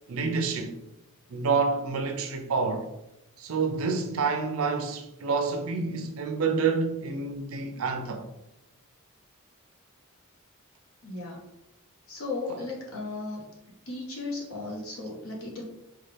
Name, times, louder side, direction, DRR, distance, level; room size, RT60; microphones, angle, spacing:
voice 1, 0.1-0.7 1.3-2.9 3.4-8.2 12.5-12.6, right 4 dB, 70° right, 0.5 m, -28 dB
voice 2, 11.0-11.4 12.1-13.5 13.9-15.6, left 3 dB, 70° left, 1.1 m, -35 dB
4.2 x 2.3 x 3.3 m
head